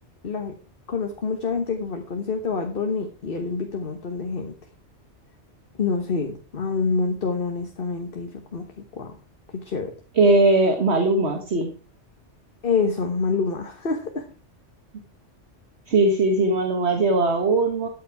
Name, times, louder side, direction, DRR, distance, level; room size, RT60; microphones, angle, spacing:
voice 1, 0.2-0.6 0.9-4.5 5.8-8.6 8.9-9.1 9.5-9.9 12.6-14.3, left 4 dB, 50° left, 5 dB, 1.5 m, -27 dB
voice 2, 10.2-11.7 15.9-17.9, right 2 dB, 65° right, 4 dB, 1.7 m, -19 dB
13.0 x 8.5 x 4.7 m, 0.36 s
omnidirectional pair, 1.2 m